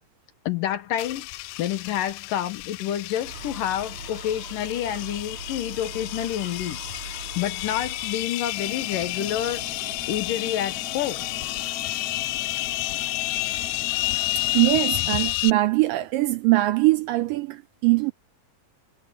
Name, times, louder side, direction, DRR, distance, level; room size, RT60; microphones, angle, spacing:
voice 1, 0.5-1.3 1.6-11.3, left 11 dB, 70° left, 2.6 m, -29 dB
sound 1, 1.0-15.5, left 21 dB, 90° left, 1.9 m, -30 dB
Gull seagull, 3.2-8.3, right 4 dB, 50° right, 6.5 m, -41 dB
sound 2, 8.5-15.0, left 5 dB, 45° left, 2.8 m, -40 dB
voice 2, 14.4-18.1, right 19 dB, 80° right, 2.1 m, -22 dB
omnidirectional pair, 4.4 m